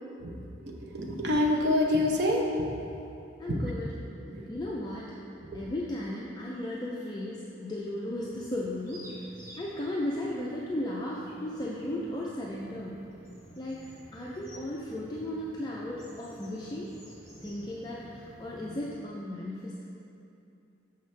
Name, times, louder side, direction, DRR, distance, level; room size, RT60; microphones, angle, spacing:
voice 1, 0.6-2.5 2.8-2.9 3.5-3.6 4.3-4.5 5.5-5.6, left 1 dB, 60° right, 0 dB, 0.7 m, -27 dB
voice 2, 3.4-3.9 4.2-5.1 5.5-9.1 9.6-13.0 13.6-13.8 14.1-16.9 17.4-19.8, left 1 dB, 20° left, -4 dB, 0.4 m, -35 dB
sound 1, 8.0-18.8, equal, 15° right, 1.0 m, -52 dB
6.2 x 5.6 x 3.2 m, 2.6 s
head